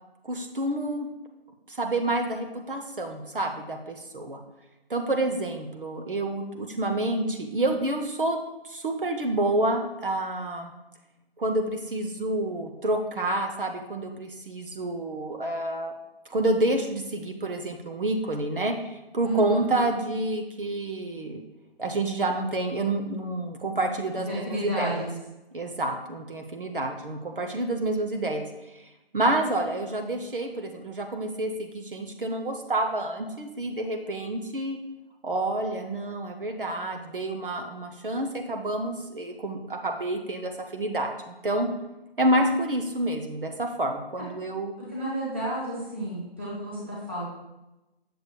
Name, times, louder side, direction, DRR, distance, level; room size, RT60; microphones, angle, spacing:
voice 1, 0.2-1.1 1.7-4.4 4.9-8.4 8.6-10.7 11.4-15.9 16.3-21.4 21.8-25.1 25.5-28.5 28.7-28.9 29.1-34.8 35.2-41.7 42.2-44.7, right 1 dB, 60° right, 3 dB, 0.8 m, -28 dB
voice 2, 19.2-19.6 24.1-25.1 44.9-47.2, right 1 dB, 10° right, -8 dB, 1.0 m, -31 dB
7.8 x 6.7 x 2.2 m, 0.97 s
figure-of-eight pair, 170°, 31 cm